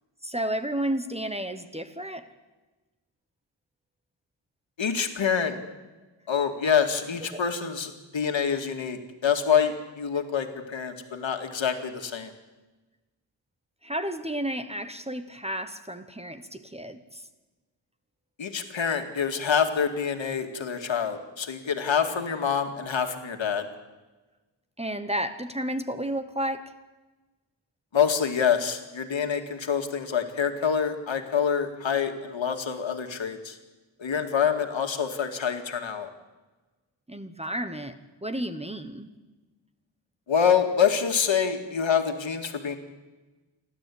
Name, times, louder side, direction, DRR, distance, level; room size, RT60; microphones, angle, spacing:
voice 1, 0.2-2.2 7.3-7.4 11.1-11.2 13.8-17.2 24.8-26.7 37.1-38.0 38.2-39.1, right 1 dB, 15° right, 10 dB, 1.1 m, -32 dB
voice 2, 4.8-5.6 6.3-12.3 18.4-23.7 27.9-33.6 34.0-36.1 40.3-42.8, left 7 dB, 75° left, 6 dB, 2.2 m, -26 dB
30.0 x 12.5 x 8.6 m, 1.2 s
wide cardioid pair, 145°, 46 cm